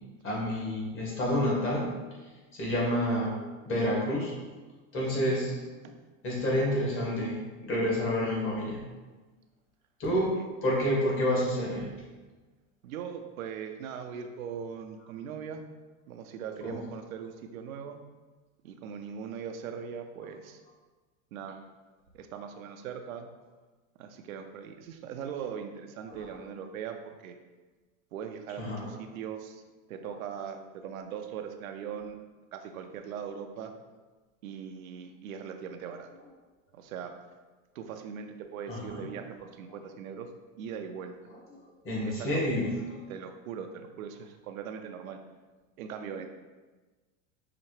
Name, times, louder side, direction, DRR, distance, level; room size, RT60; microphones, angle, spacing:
voice 1, 0.2-1.9 2.5-3.3 3.7-4.4 4.9-5.5 6.2-8.8 10.0-10.3 10.6-11.9 16.6-16.8 26.1-26.2 28.6-28.9 38.7-39.0 41.8-43.0, equal, 30° left, -4 dB, 1.4 m, -29 dB
voice 2, 4.9-5.3 5.8-5.9 10.4-10.5 12.8-15.6 16.1-18.0 18.6-20.6 21.3-21.6 22.1-23.3 24.0-27.4 28.1-29.6 29.9-32.2 32.5-33.7 34.4-36.1 36.7-37.1 37.7-40.3 40.6-41.2 42.0-42.4 43.1-45.2 45.8-46.3, right 7 dB, 90° right, 6 dB, 0.5 m, -40 dB
5.7 x 2.1 x 3.0 m, 1.3 s
hypercardioid pair, 110°, 40 cm